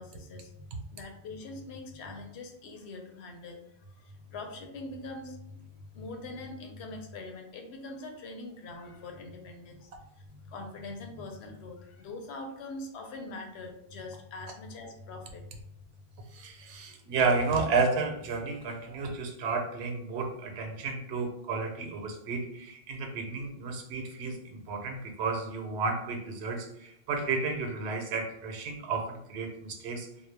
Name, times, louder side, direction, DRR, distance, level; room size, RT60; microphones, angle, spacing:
voice 1, 0.0-5.6 5.9-15.5 16.4-17.1, left 2 dB, 85° left, 3 dB, 0.8 m, -43 dB
voice 2, 16.3-30.1, right 4 dB, 85° right, 3 dB, 0.9 m, -32 dB
2.2 x 2.0 x 3.2 m, 0.74 s
omnidirectional pair, 1.1 m